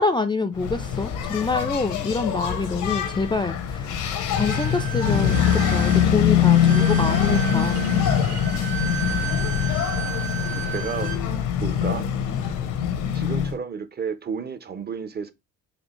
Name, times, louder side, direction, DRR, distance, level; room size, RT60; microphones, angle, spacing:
voice 1, 0.0-7.8, left 4 dB, 15° left, 0.3 m, -26 dB
Engine, 0.6-13.6, left 8 dB, 85° left, 0.7 m, -23 dB
Bowed string instrument, 4.3-11.2, right 11 dB, 75° right, 1.1 m, -34 dB
voice 2, 10.7-11.1 11.6-12.1 13.1-15.3, right 6 dB, 35° right, 0.6 m, -31 dB
4.3 x 2.8 x 2.9 m
cardioid pair, 90°, 30 cm